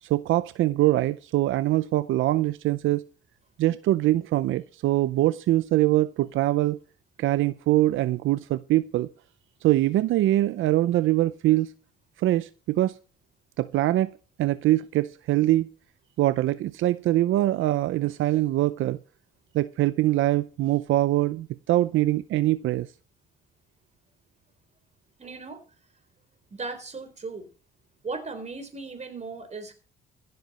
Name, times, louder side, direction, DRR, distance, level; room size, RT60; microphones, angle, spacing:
voice 1, 0.0-3.0 3.6-6.8 7.2-9.1 9.6-11.7 12.2-13.0 13.6-15.7 16.2-19.0 19.5-22.9, right 15 dB, 80° right, 0.6 m, -23 dB
voice 2, 25.2-25.6 26.5-27.5 28.0-29.7, right 3 dB, 35° right, 4.1 m, -37 dB
15.5 x 7.9 x 5.5 m
cardioid pair, 90°, 20 cm